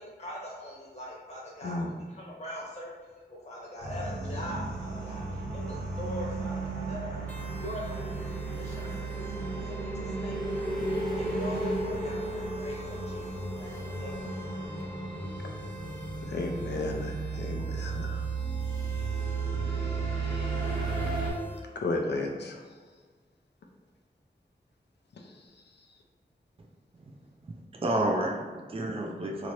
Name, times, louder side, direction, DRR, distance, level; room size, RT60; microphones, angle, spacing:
voice 1, 0.0-2.9 3.3-7.2 7.5-14.6, left 1 dB, 40° left, -5 dB, 0.9 m, -42 dB
sound 1, 3.8-21.3, right 3 dB, 60° right, 1.3 m, -33 dB
sound 2, 7.3-21.6, equal, 10° left, 0.7 m, -48 dB
voice 2, 16.3-18.2 20.2-20.5 21.8-22.6, left 2 dB, 85° left, 2 dB, 0.5 m, -33 dB
voice 3, 27.5-29.5, right 1 dB, 35° right, 1 dB, 0.4 m, -30 dB
2.9 x 2.5 x 3.1 m, 1.5 s
wide cardioid pair, 60°, 17 cm